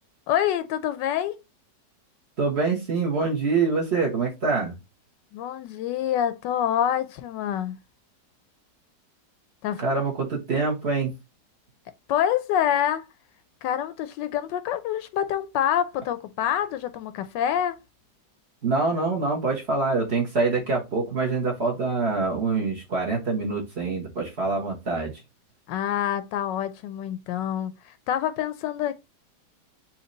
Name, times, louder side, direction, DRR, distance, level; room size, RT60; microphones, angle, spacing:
voice 1, 0.3-1.4 5.3-7.8 9.6-9.8 12.1-13.1 13.6-17.8 25.7-28.9, left 10 dB, 85° left, 1.2 m, -26 dB
voice 2, 2.4-4.7 9.8-11.1 18.6-25.1, right 4 dB, 40° right, 1.5 m, -25 dB
4.4 x 3.0 x 3.8 m
omnidirectional pair, 1.9 m